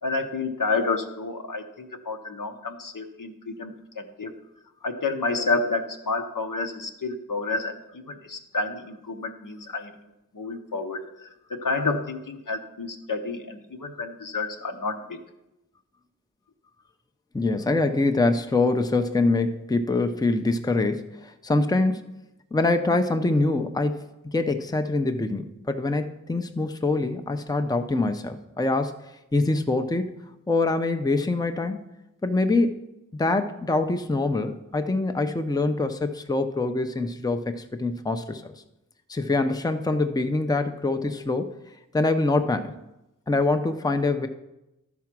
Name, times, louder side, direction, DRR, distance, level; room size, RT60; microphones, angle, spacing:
voice 1, 0.0-4.3 4.8-9.9 10.3-15.2, left 3 dB, 70° left, 5 dB, 0.9 m, -30 dB
voice 2, 17.3-22.1 22.5-29.0 29.3-30.1 30.5-31.9 32.2-32.8 33.1-38.6 39.1-41.6 41.9-42.7 43.3-44.3, left 2 dB, 10° left, 7 dB, 0.6 m, -24 dB
12.0 x 4.7 x 6.0 m, 0.94 s
wide cardioid pair, 50°, 33 cm